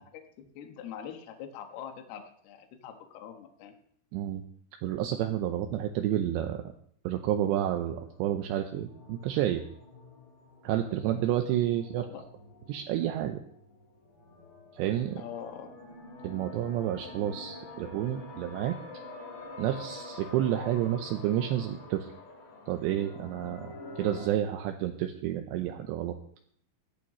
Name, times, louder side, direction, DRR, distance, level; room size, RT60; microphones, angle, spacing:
voice 1, 0.0-3.7 11.9-12.2 15.2-15.7, left 8 dB, 65° left, 5 dB, 2.8 m, -43 dB
voice 2, 4.1-4.4 4.8-6.7 7.0-9.6 10.6-12.1 12.7-13.4 14.7-15.2 16.2-18.7 19.6-22.1 22.7-23.7 24.0-26.1, right 12 dB, 80° right, 5 dB, 2.6 m, -30 dB
sound 1, 7.7-24.3, left 2 dB, 90° left, 5.8 m, -47 dB
17.0 x 11.5 x 3.1 m, 0.63 s
omnidirectional pair, 5.7 m